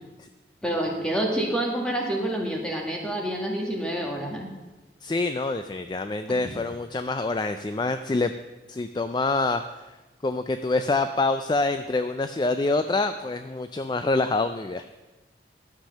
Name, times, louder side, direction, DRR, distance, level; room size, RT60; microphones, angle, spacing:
voice 1, 0.6-4.5, right 1 dB, 5° left, 0 dB, 1.8 m, -28 dB
voice 2, 5.0-8.3 8.7-10.0 10.2-14.8, left 3 dB, 25° left, 9 dB, 0.3 m, -26 dB
12.0 x 7.5 x 6.5 m, 1.1 s
head